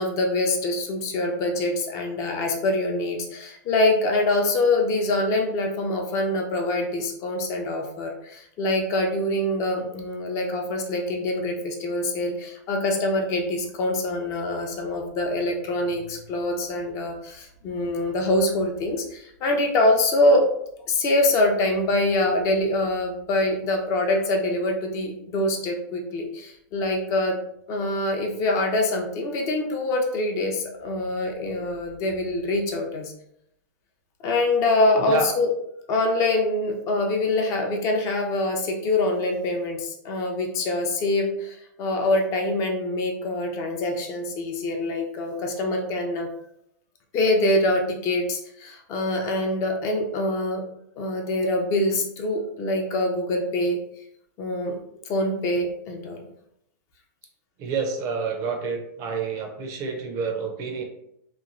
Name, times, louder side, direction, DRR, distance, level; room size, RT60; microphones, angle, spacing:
voice 1, 0.0-20.4 20.9-27.4 27.7-33.1 34.2-35.5 35.9-46.3 47.1-50.6 51.0-53.8 54.4-54.8 55.1-56.3, left 2 dB, 30° left, 2 dB, 0.5 m, -24 dB
voice 2, 57.6-60.8, right 4 dB, 30° right, 4 dB, 0.5 m, -28 dB
3.0 x 2.2 x 2.5 m, 0.76 s
hypercardioid pair, 145°, 10 cm